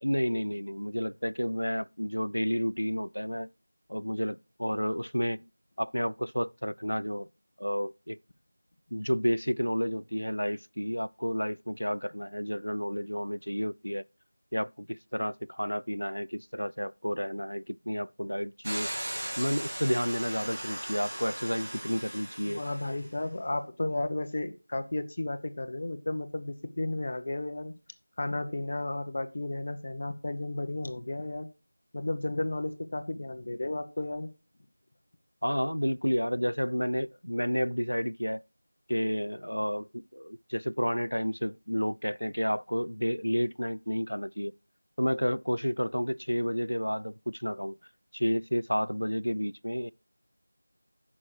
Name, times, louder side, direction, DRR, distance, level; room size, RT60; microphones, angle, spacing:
voice 1, 0.0-3.5 3.9-5.4 5.8-7.3 7.6-8.2 8.9-14.0 14.5-18.9 19.4-22.6 35.4-38.4 38.9-44.5 45.0-47.8 48.1-49.9, equal, 85° left, 0.4 m, -31 dB
sound 1, 18.6-23.1, right 1 dB, 40° right, 2.9 m, -38 dB
voice 2, 22.5-27.7 28.2-31.5 31.9-34.3, left 2 dB, 30° left, 0.9 m, -33 dB
9.5 x 6.1 x 4.6 m
figure-of-eight pair, 175°, 0 cm